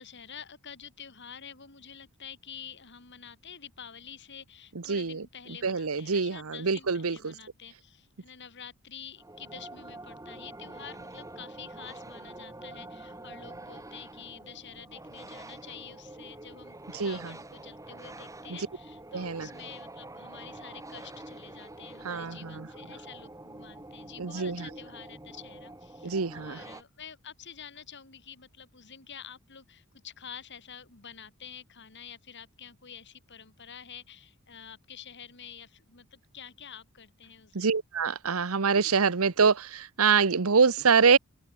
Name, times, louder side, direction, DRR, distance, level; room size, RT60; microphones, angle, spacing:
voice 1, 0.0-37.7, left 7 dB, 55° left, 2.8 m, -48 dB
voice 2, 4.7-5.2 5.6-7.3 16.9-17.3 19.1-19.5 22.0-22.7 24.2-24.7 26.0-26.6 37.5-41.2, right 5 dB, 75° right, 1.0 m, -25 dB
sound 1, 9.2-26.8, right 2 dB, 15° right, 3.0 m, -46 dB
open air
head